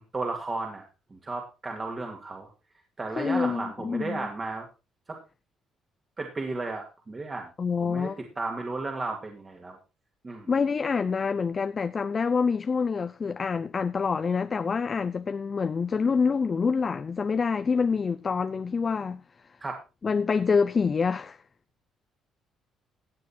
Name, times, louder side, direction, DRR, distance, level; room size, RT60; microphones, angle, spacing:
voice 1, 0.1-0.8 1.1-2.5 3.0-4.7 5.1-5.2 6.2-7.5 7.8-8.1 8.4-9.8 10.2-10.5 19.6-19.8, right 3 dB, 25° right, 2.3 m, -34 dB
voice 2, 3.1-4.3 7.6-8.2 10.5-19.2 20.0-21.4, left 5 dB, 30° left, 0.6 m, -26 dB
16.0 x 8.6 x 4.4 m
cardioid pair, 125°, 0 cm